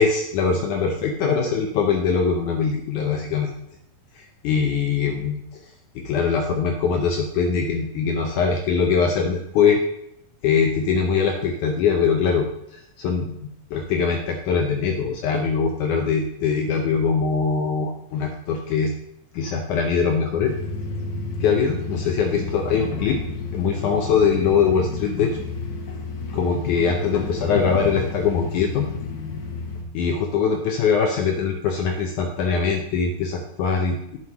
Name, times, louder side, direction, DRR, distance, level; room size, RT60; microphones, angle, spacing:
voice 1, 0.0-3.5 4.2-5.4 6.0-9.8 10.4-13.4 13.7-18.9 19.3-20.5 21.4-23.2 23.5-25.4 26.3-28.9 29.9-34.2, left 5 dB, 80° left, 2 dB, 1.8 m, -22 dB
sound 1, 20.4-29.8, left 4 dB, 65° left, 2.4 m, -31 dB
11.0 x 7.8 x 3.0 m, 0.75 s
omnidirectional pair, 4.5 m